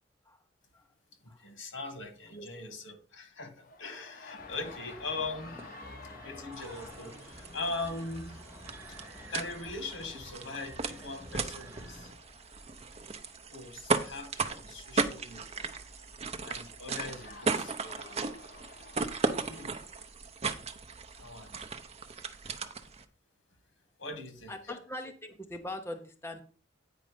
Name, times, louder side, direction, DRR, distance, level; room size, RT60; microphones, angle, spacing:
voice 1, 1.2-5.6 6.0-8.4 8.9-9.0 9.3-12.1 13.5-15.7 16.4-18.2 19.4-19.8 21.1-21.6 24.0-24.5, left 3 dB, 80° left, 7 dB, 2.0 m, -41 dB
sound 1, 3.6-20.1, left 4 dB, 50° left, 1.0 m, -54 dB
sound 2, 4.4-12.1, equal, 10° right, 1.7 m, -49 dB
sound 3, 6.5-23.0, right 4 dB, 35° right, 0.7 m, -36 dB
voice 2, 24.5-26.4, left 1 dB, 15° left, 5 dB, 0.7 m, -41 dB
9.2 x 5.0 x 5.1 m, 0.39 s
head